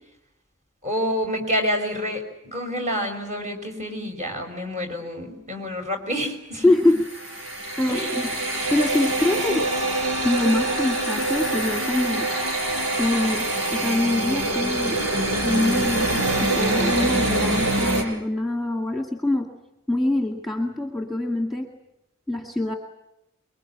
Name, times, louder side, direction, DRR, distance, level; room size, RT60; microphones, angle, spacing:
voice 1, 0.8-6.6 7.9-8.2, equal, 35° right, 3 dB, 5.7 m, -28 dB
voice 2, 6.6-7.1 7.8-8.3 8.7-9.7 10.2-12.3 13.0-15.0 15.4-19.5 19.9-21.7 22.3-22.7, left 2 dB, ahead, 2 dB, 2.0 m, -24 dB
sound 1, 6.8-18.0, right 2 dB, 85° right, 5.9 m, -25 dB
25.5 x 23.0 x 8.9 m, 0.88 s
head